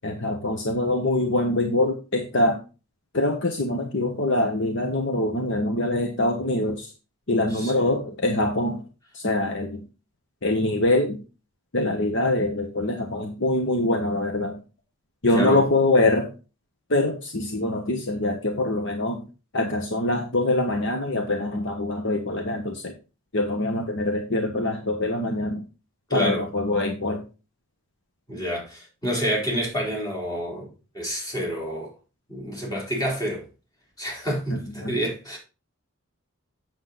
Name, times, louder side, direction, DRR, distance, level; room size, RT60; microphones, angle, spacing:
voice 1, 0.0-2.6 3.1-6.9 7.3-8.8 9.1-9.8 10.4-11.2 11.7-14.6 15.2-16.3 16.9-19.2 19.5-22.9 23.3-25.6 26.1-27.2 34.5-35.0, left 2 dB, 55° left, 1.1 m, -24 dB
voice 2, 26.1-26.4 28.3-31.9 32.3-33.4 34.0-35.4, equal, 20° left, 3.9 m, -28 dB
7.7 x 7.1 x 4.0 m
head